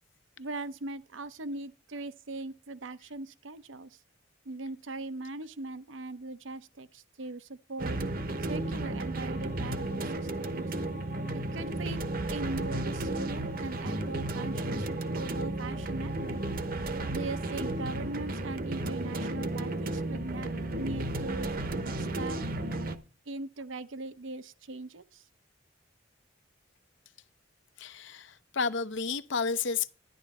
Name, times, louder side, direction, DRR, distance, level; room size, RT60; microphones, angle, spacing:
voice 1, 0.4-4.0 4.4-8.0 8.4-10.7 11.3-12.0 12.3-16.4 17.1-20.5 20.8-21.5 21.9-22.4 23.3-25.2, right 2 dB, 75° right, 0.8 m, -40 dB
sound 1, 7.8-23.0, right 2 dB, 45° right, 0.9 m, -33 dB
voice 2, 27.8-29.9, left 5 dB, 70° left, 0.7 m, -31 dB
11.5 x 11.0 x 4.2 m
head